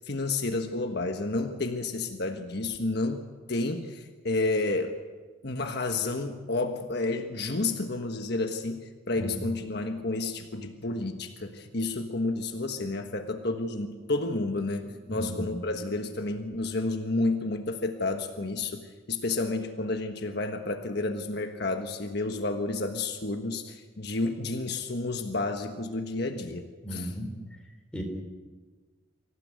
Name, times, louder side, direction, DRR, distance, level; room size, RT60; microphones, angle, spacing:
voice 1, 0.0-5.0 5.4-26.7 26.9-27.1, left 2 dB, 55° left, 5 dB, 1.4 m, -30 dB
voice 2, 14.9-15.6 26.8-27.3 27.9-28.0, equal, 5° left, 1 dB, 4.4 m, -36 dB
25.0 x 16.0 x 9.5 m, 1.4 s
head